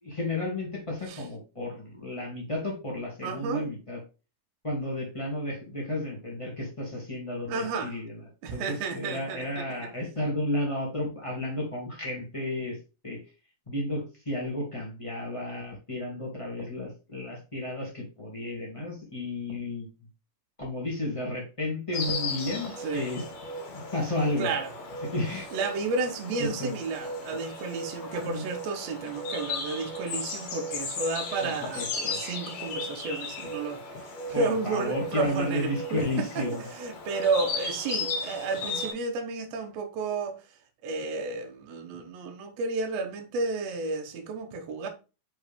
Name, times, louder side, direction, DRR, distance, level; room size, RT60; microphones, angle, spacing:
voice 1, 0.0-4.0 4.6-8.2 8.5-12.8 13.0-13.2 13.7-19.9 20.6-23.2 23.7-24.5 25.0-25.5 26.4-26.7 28.2-28.4 31.4-32.2 34.3-36.6, left 1 dB, 15° left, 1.0 m, -32 dB
voice 2, 3.2-3.7 7.5-7.9 8.4-9.9 22.8-23.0 24.4-24.7 25.5-33.8 34.3-40.4 40.8-44.9, right 4 dB, 80° right, 1.5 m, -32 dB
Insect, 21.9-38.9, left 3 dB, 60° left, 3.1 m, -36 dB
6.3 x 5.0 x 3.6 m
omnidirectional pair, 4.8 m